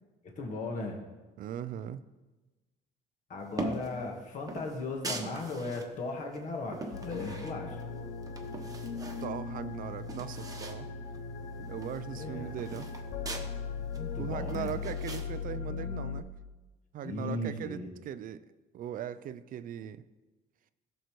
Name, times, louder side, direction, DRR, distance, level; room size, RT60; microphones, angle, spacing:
voice 1, 0.2-1.0 3.3-7.8 12.1-12.5 13.9-14.7 17.0-17.9, left 2 dB, 50° left, 1.6 m, -37 dB
voice 2, 1.4-2.0 9.2-10.9 11.7-12.9 14.2-16.3 16.9-18.5 18.7-20.0, right 10 dB, 55° right, 0.4 m, -39 dB
sound 1, 3.5-4.0 4.5-5.9 6.3-7.9 8.2-9.3 9.6-9.7 9.9-10.8 11.1-11.2 11.5-13.5 13.9-15.3, right 2 dB, 20° right, 1.1 m, -41 dB
sound 2, 6.9-16.2, left 5 dB, 90° left, 0.7 m, -38 dB
15.5 x 6.5 x 3.1 m
cardioid pair, 110°, 17 cm